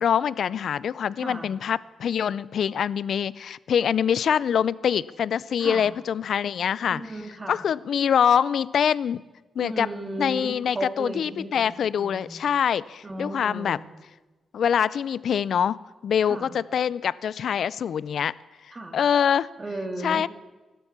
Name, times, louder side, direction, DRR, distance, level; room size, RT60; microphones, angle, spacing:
voice 1, 0.0-7.0 7.5-9.2 9.6-9.9 10.2-13.8 14.5-15.8 16.0-18.3 18.9-19.5 20.0-20.3, left 8 dB, 70° left, 20 dB, 0.4 m, -24 dB
voice 2, 6.9-7.6 9.6-12.4 13.0-13.9 16.3-16.5 18.7-19.0 19.6-20.3, right 2 dB, 30° right, 5 dB, 2.4 m, -35 dB
16.0 x 12.5 x 7.2 m, 1.2 s
cardioid pair, 85°, 0 cm